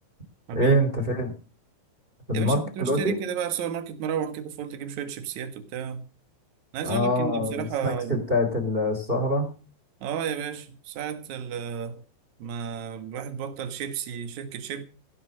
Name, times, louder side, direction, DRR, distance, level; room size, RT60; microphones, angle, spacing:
voice 1, 0.5-1.3 2.3-3.1 6.8-9.5, equal, 15° right, 1.9 m, -24 dB
voice 2, 2.3-6.1 6.7-8.2 10.0-12.0 12.4-14.8, right 8 dB, 70° right, 1.8 m, -32 dB
16.0 x 8.1 x 6.4 m
omnidirectional pair, 5.7 m